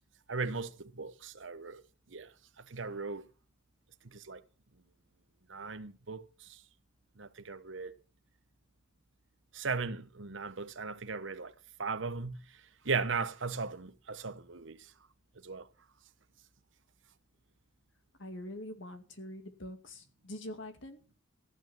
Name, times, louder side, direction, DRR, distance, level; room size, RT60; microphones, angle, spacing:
voice 1, 0.3-1.8 2.1-3.3 4.0-4.4 5.5-6.6 7.2-7.9 9.5-11.5 11.8-14.9 15.4-15.7, right 4 dB, 65° right, 1.0 m, -38 dB
voice 2, 18.2-21.0, left 1 dB, 65° left, 2.2 m, -44 dB
14.5 x 9.4 x 6.1 m
head